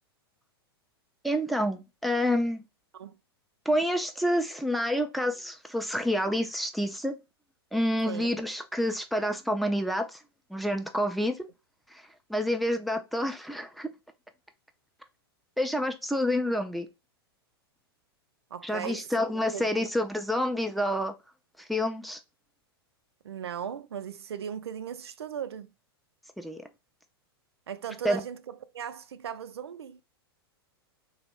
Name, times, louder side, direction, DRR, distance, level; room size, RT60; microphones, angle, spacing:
voice 1, 1.2-2.6 3.7-7.1 7.7-10.2 10.5-11.5 11.9-12.0 12.3-13.9 15.6-16.9 18.6-21.1 21.6-22.2 26.4-26.6 28.0-28.2, equal, ahead, 0.4 m, -28 dB
voice 2, 18.5-19.1 19.5-19.9 23.2-25.7 27.7-30.0, right 8 dB, 85° right, 0.4 m, -38 dB
3.3 x 2.0 x 2.9 m
hypercardioid pair, 105°, 13 cm